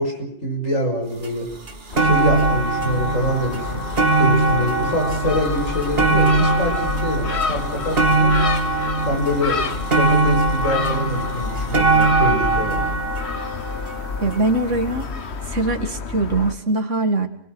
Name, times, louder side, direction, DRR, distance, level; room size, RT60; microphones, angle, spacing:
voice 1, 0.0-1.5 2.0-3.8 4.2-8.4 9.0-9.6 10.0-12.8, left 1 dB, 90° left, 2 dB, 6.5 m, -25 dB
sound 1, 1.2-1.3 1.7-14.8 15.6-15.7, right 3 dB, 50° right, 2.0 m, -21 dB
sound 2, 1.5-16.1, left 1 dB, 45° left, 8.1 m, -38 dB
Gull seagull, 1.9-16.5, left 5 dB, 60° left, 1.4 m, -29 dB
voice 2, 14.2-15.1 15.5-17.3, right 2 dB, 70° right, 6 dB, 2.4 m, -22 dB
28.0 x 20.5 x 6.3 m, 0.63 s
omnidirectional pair, 1.3 m